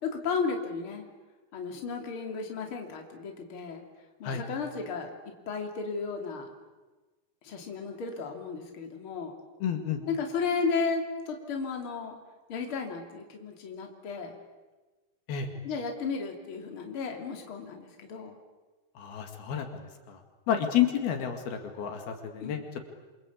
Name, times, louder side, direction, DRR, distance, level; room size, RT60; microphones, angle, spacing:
voice 1, 0.0-1.0 1.5-3.8 4.2-5.1 5.5-6.5 7.4-9.3 10.1-12.2 12.5-14.3 15.6-18.4 22.4-22.6, left 5 dB, 35° left, 2 dB, 3.4 m, -34 dB
voice 2, 9.6-10.0 15.3-15.5 19.0-20.2 20.5-22.8, left 9 dB, 70° left, 5 dB, 4.0 m, -30 dB
28.0 x 25.5 x 8.5 m, 1.2 s
omnidirectional pair, 4.6 m